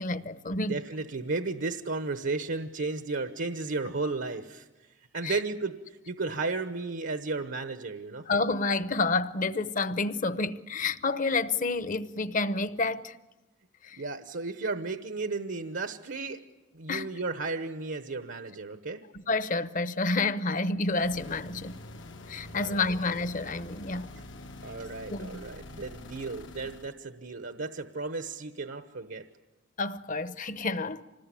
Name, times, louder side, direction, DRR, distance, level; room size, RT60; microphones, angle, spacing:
voice 1, 0.0-0.7 5.2-5.4 8.3-13.2 13.8-14.0 16.9-17.1 19.1-21.8 22.3-24.1 25.1-25.4 29.8-31.0, left 3 dB, 45° left, 0.9 m, -29 dB
voice 2, 0.7-8.3 14.0-16.4 16.7-19.0 22.5-22.9 24.6-29.3, right 3 dB, 80° right, 1.1 m, -34 dB
sound 1, 20.9-27.0, left 2 dB, 80° left, 1.3 m, -46 dB
26.0 x 20.0 x 10.0 m
head